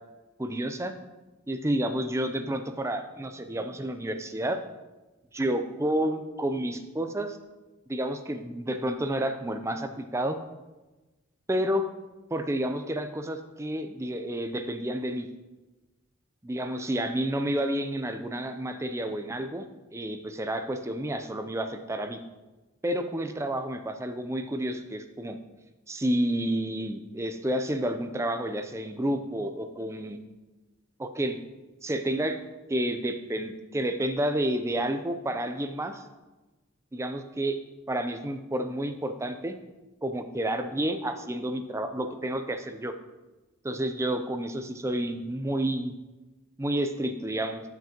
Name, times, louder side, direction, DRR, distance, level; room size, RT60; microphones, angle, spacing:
voice 1, 0.4-0.9 1.5-4.6 5.3-7.4 7.9-10.4 11.5-11.9 12.3-15.3 16.4-19.7 19.9-22.2 22.8-25.4 25.9-30.2 31.0-31.4 31.8-32.4 32.7-36.0 36.9-37.6 37.9-39.5 40.0-42.9 43.6-45.9 46.6-47.6, right 1 dB, 15° right, 8 dB, 0.4 m, -30 dB
12.0 x 5.9 x 2.9 m, 1.1 s
head